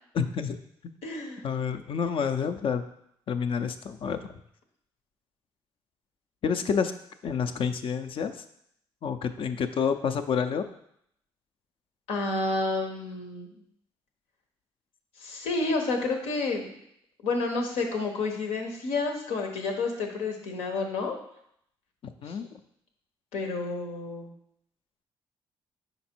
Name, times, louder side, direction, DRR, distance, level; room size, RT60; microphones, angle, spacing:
voice 1, 0.1-0.6 0.8-0.9 1.4-2.8 3.3-4.3 6.4-6.9 7.2-8.4 9.0-10.7 22.2-22.5, left 6 dB, 60° left, 9 dB, 0.5 m, -28 dB
voice 2, 1.0-1.4 12.1-13.5 15.2-16.7 17.2-21.2 22.2-22.4 23.3-24.3, left 3 dB, 90° left, 2 dB, 1.0 m, -30 dB
5.2 x 4.1 x 4.4 m, 0.72 s
supercardioid pair, 65°, 10 cm